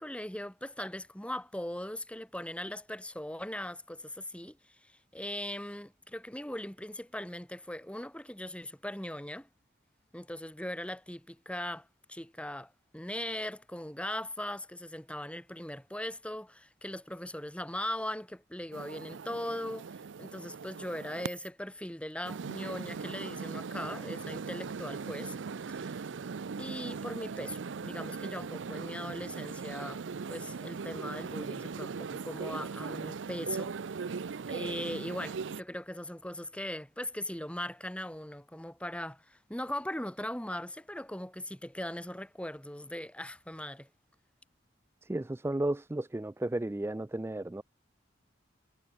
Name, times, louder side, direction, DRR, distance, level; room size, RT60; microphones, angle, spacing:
voice 1, 0.0-4.6 4.8-9.5 10.1-25.3 25.7-26.0 26.6-30.0 30.3-33.7 34.5-43.9, left 1 dB, 5° left, 2.9 m, -39 dB
sound 1, 18.7-21.5 22.2-35.6, right 5 dB, 85° right, 0.5 m, -39 dB
voice 2, 45.0-47.6, right 1 dB, 15° right, 0.4 m, -33 dB
head